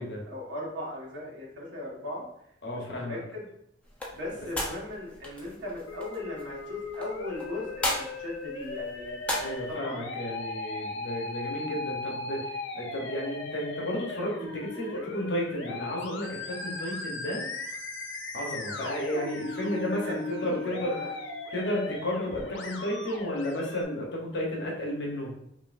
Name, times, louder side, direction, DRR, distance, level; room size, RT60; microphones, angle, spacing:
voice 1, 0.3-2.3 2.7-3.5 4.1-9.2 9.7-10.2 19.9-21.1, left 1 dB, 80° right, -4 dB, 1.5 m, -38 dB
voice 2, 2.6-3.2 9.4-17.5 18.3-21.0 21.5-25.3, left 1 dB, 65° left, -1 dB, 0.9 m, -33 dB
sound 1, 3.8-9.7, left 1 dB, 5° left, 0.7 m, -37 dB
Musical instrument, 5.9-23.8, left 3 dB, 85° left, 0.6 m, -37 dB
5.4 x 2.6 x 2.5 m, 0.77 s
head